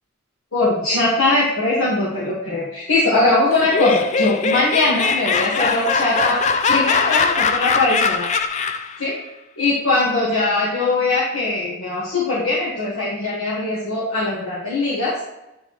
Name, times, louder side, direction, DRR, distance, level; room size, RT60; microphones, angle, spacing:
voice 1, 0.5-6.4 6.7-8.3 9.0-9.1 9.6-15.1, left 2 dB, 80° left, -8 dB, 1.6 m, -20 dB
Laughter, 3.5-9.0, left 5 dB, 35° left, 0.3 m, -21 dB
9.1 x 3.8 x 3.1 m, 0.95 s
head